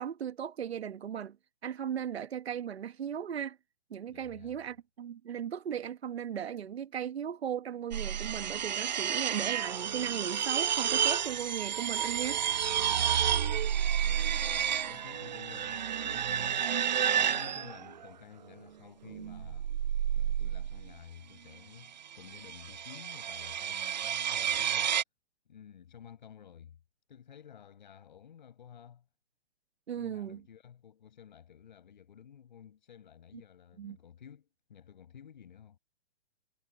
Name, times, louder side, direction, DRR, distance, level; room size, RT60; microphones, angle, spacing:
voice 1, 0.0-1.4 1.6-3.6 3.9-12.4 29.9-30.4 33.8-34.0, right 9 dB, 80° right, 1.3 m, -37 dB
voice 2, 4.1-4.6 12.9-13.5 14.0-16.9 17.2-19.8 20.1-25.0 25.5-26.8 27.1-29.0 30.0-35.8, left 8 dB, 50° left, 5.6 m, -53 dB
sound 1, 7.9-18.1 19.1-20.9 22.1-25.0, right 9 dB, 45° right, 0.8 m, -31 dB
hypercardioid pair, 180°, 31 cm